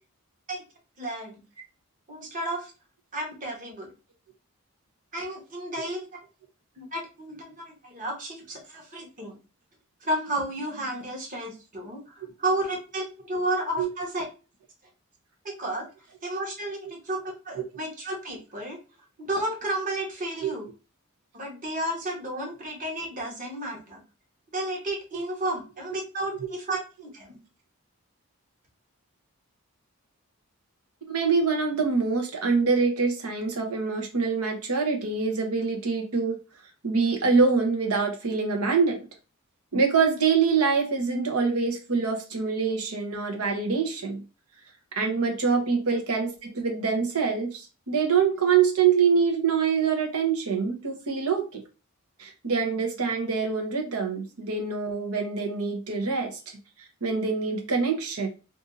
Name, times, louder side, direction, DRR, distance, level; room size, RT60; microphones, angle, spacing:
voice 1, 1.0-1.3 2.1-2.7 3.1-3.9 5.1-6.1 6.8-9.4 10.0-14.2 15.4-15.9 16.2-18.8 19.2-20.7 21.3-24.0 24.5-27.4 45.9-46.0, right 1 dB, 35° right, 0 dB, 1.1 m, -32 dB
voice 2, 31.1-36.4 36.8-39.0 39.7-44.2 44.9-51.6 52.2-56.6 57.0-58.3, right 5 dB, 85° right, 2 dB, 1.0 m, -25 dB
2.7 x 2.6 x 3.8 m, 0.32 s
head